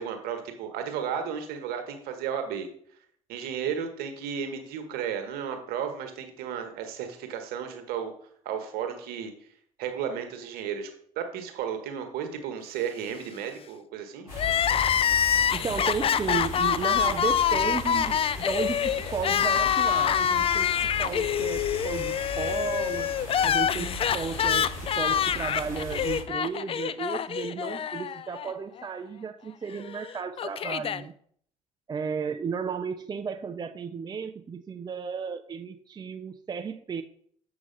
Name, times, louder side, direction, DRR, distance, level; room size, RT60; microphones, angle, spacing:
voice 1, 0.0-2.7 3.3-8.1 8.4-9.3 9.8-10.9 11.2-14.3, right 8 dB, 60° right, 7 dB, 1.4 m, -33 dB
sound 1, 14.2-26.3, right 3 dB, 90° right, 0.5 m, -50 dB
sound 2, 14.3-26.2, left 2 dB, 75° left, 3.3 m, -38 dB
Crying sobbing, 14.3-28.5 28.8-28.9 29.9-31.0, left 8 dB, 30° left, 0.4 m, -26 dB
voice 2, 15.5-23.1 23.4-31.1 31.9-37.0, right 6 dB, 25° right, 8 dB, 0.6 m, -34 dB
7.6 x 5.9 x 4.0 m, 0.62 s
figure-of-eight pair, 50°, 18 cm